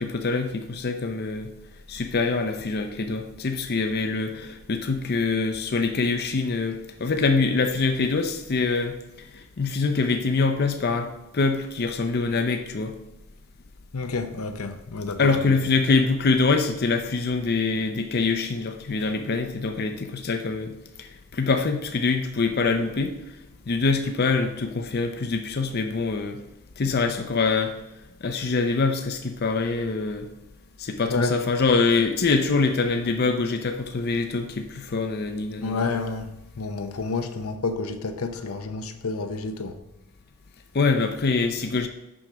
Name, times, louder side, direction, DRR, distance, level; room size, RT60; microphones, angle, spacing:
voice 1, 0.0-1.5 1.9-12.9 15.2-20.7 21.0-23.1 23.7-26.4 26.8-27.8 28.2-30.3 30.8-35.9 40.7-41.9, left 4 dB, 45° left, 0.5 m, -24 dB
voice 2, 13.9-15.4 31.1-31.4 35.6-39.8, left 3 dB, 85° left, 0.7 m, -29 dB
6.2 x 5.9 x 4.9 m
head